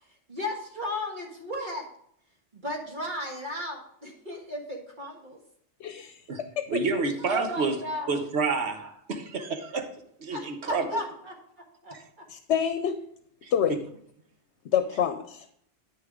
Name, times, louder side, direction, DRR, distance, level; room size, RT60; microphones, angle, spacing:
voice 1, 0.3-1.9 2.5-5.4 6.8-8.2 10.3-11.3 11.8-11.9, left 1 dB, 45° right, 1.8 m, -35 dB
voice 2, 5.8-6.2 6.6-6.7 12.3-13.0 13.5-13.8 14.7-15.5, left 8 dB, 80° left, 0.9 m, -26 dB
voice 3, 6.7-7.8 8.1-9.9 10.2-10.9 11.9-12.0 13.4-13.5, right 4 dB, 75° right, 1.2 m, -29 dB
8.4 x 6.7 x 3.7 m
omnidirectional pair, 1.1 m